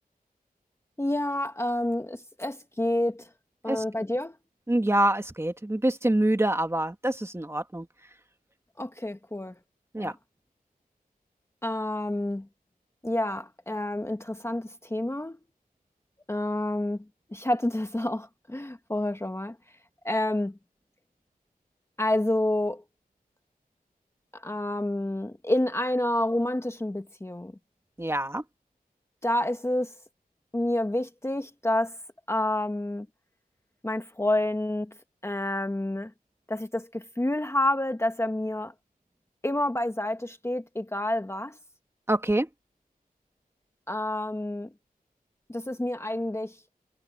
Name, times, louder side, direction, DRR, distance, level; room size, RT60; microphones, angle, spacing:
voice 1, 1.0-3.3 3.6-4.3 8.8-9.5 10.0-10.1 11.6-12.5 13.0-15.4 16.3-17.0 17.3-19.5 20.0-20.5 22.0-22.8 24.3-27.5 29.2-29.9 30.5-32.0 32.3-33.1 33.8-34.9 35.2-36.1 36.5-38.7 39.4-41.6 43.9-44.7 45.5-46.6, left 1 dB, 15° left, 1.3 m, -28 dB
voice 2, 4.7-7.9 9.9-10.1 28.0-28.4 42.1-42.5, right 1 dB, 15° right, 1.9 m, -25 dB
wide cardioid pair, 90°, 15 cm